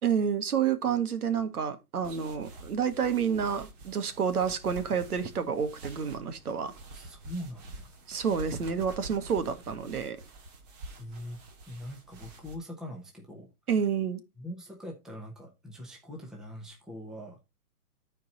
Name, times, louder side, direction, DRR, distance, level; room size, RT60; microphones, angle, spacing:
voice 1, 0.0-6.7 8.1-10.2 13.7-14.2, right 7 dB, 80° right, 1.8 m, -29 dB
sound 1, 2.0-12.5, right 2 dB, 30° right, 1.8 m, -47 dB
voice 2, 6.8-7.9 11.0-11.4 11.7-13.5 14.4-17.4, equal, ahead, 0.9 m, -42 dB
13.0 x 4.6 x 4.1 m
hypercardioid pair, 155°, 44 cm